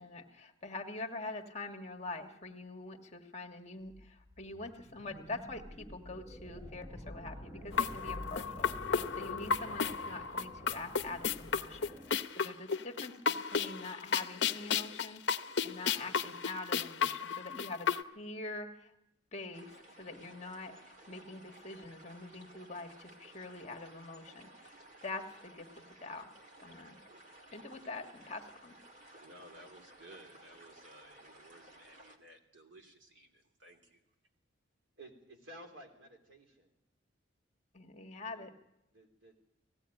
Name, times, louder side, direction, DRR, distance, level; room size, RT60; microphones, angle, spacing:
voice 1, 0.0-18.9 19.3-24.8 25.0-26.3 26.6-27.0 27.5-28.8 37.7-38.5, left 2 dB, 35° left, 5 dB, 1.4 m, -45 dB
sound 1, 3.9-12.2, equal, 10° right, 1.0 m, -49 dB
sound 2, 7.7-18.0, left 6 dB, 60° left, 0.7 m, -33 dB
sound 3, 19.5-32.2, right 1 dB, 40° right, 2.0 m, -57 dB
voice 2, 29.2-34.0, right 1 dB, 65° right, 4 dB, 2.8 m, -57 dB
voice 3, 35.0-36.7 38.3-38.5 38.9-39.4, right 1 dB, 85° right, 3 dB, 3.8 m, -54 dB
19.0 x 16.0 x 8.9 m, 0.87 s
head